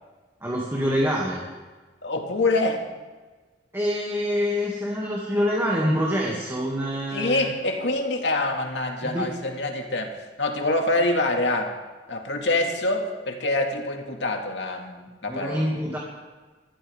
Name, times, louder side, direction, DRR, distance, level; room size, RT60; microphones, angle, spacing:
voice 1, 0.4-1.4 3.7-7.5 9.0-9.3 15.3-16.0, equal, 15° right, -4 dB, 2.3 m, -26 dB
voice 2, 2.0-2.8 7.1-11.7 12.1-15.7, left 2 dB, 80° left, 2 dB, 2.2 m, -25 dB
25.5 x 15.0 x 3.6 m, 1.3 s
head